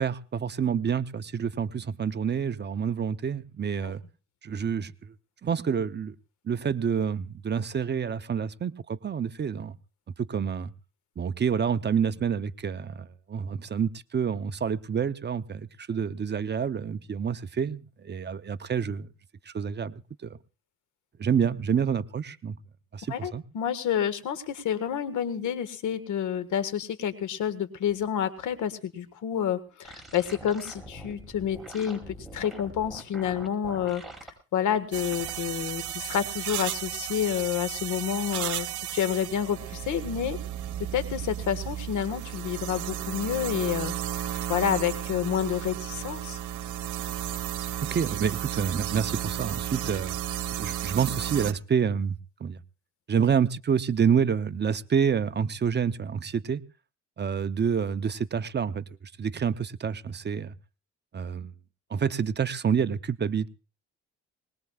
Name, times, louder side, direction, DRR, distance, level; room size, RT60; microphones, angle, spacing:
voice 1, 0.0-4.0 4.4-5.1 5.4-6.2 6.4-9.8 10.2-10.7 11.2-19.1 19.5-20.4 21.2-22.6 22.9-23.4 47.9-50.2 50.6-52.6 53.1-56.6 57.2-58.9 59.2-60.5 61.1-61.5 61.9-63.5, right 7 dB, 35° right, 0.7 m, -28 dB
voice 2, 23.1-34.0 34.5-40.4 40.9-43.9 44.2-46.4, left 9 dB, 75° left, 1.7 m, -29 dB
sound 1, 29.8-34.3 34.7-35.3, right 1 dB, ahead, 5.0 m, -44 dB
sound 2, 34.9-51.5, right 11 dB, 80° right, 1.1 m, -34 dB
21.0 x 20.0 x 2.4 m
cardioid pair, 90°, 30 cm